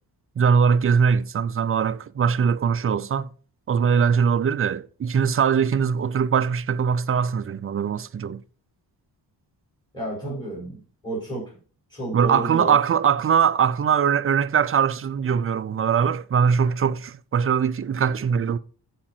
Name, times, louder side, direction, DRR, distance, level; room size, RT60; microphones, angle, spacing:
voice 1, 0.4-3.3 3.7-8.4 12.1-18.6, right 7 dB, 35° right, 0.4 m, -21 dB
voice 2, 9.9-11.4 11.9-12.8, right 1 dB, 10° left, 5.2 m, -31 dB
15.0 x 5.0 x 4.4 m
wide cardioid pair, 155°, 43 cm